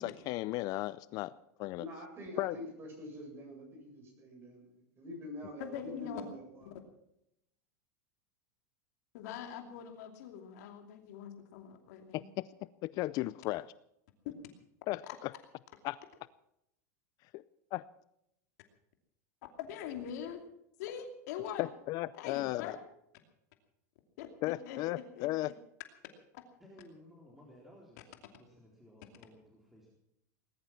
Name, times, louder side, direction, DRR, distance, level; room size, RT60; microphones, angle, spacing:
voice 1, 0.0-1.3 1.6-1.8 2.4-2.6 12.1-12.5 12.8-13.7 14.9-15.3 15.8-16.0 17.3-17.4 17.7-17.8 21.6-22.8 24.4-25.5, left 18 dB, 45° left, 18 dB, 0.5 m, -35 dB
voice 2, 1.8-6.7, left 1 dB, 25° right, 2 dB, 7.8 m, -46 dB
voice 3, 5.6-6.2 9.1-12.3 19.6-20.4 20.8-21.7 22.2-22.8 24.2-25.5 26.3-26.4, left 9 dB, 70° left, 5 dB, 2.7 m, -43 dB
voice 4, 26.6-30.0, equal, 5° right, -3 dB, 4.0 m, -57 dB
20.0 x 11.5 x 6.0 m, 0.79 s
supercardioid pair, 135°, 9 cm